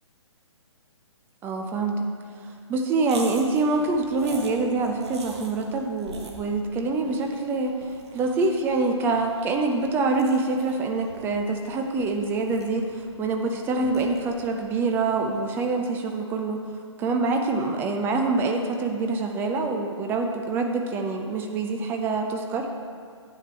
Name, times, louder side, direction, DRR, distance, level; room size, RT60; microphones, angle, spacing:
voice 1, 1.4-2.0 2.7-7.7 8.1-16.6 17.0-22.7, right 3 dB, 15° right, 3 dB, 0.5 m, -25 dB
sound 1, 3.0-15.5, right 3 dB, 60° right, 1.3 m, -45 dB
9.7 x 7.4 x 4.4 m, 2.2 s
figure-of-eight pair, 130°, 16 cm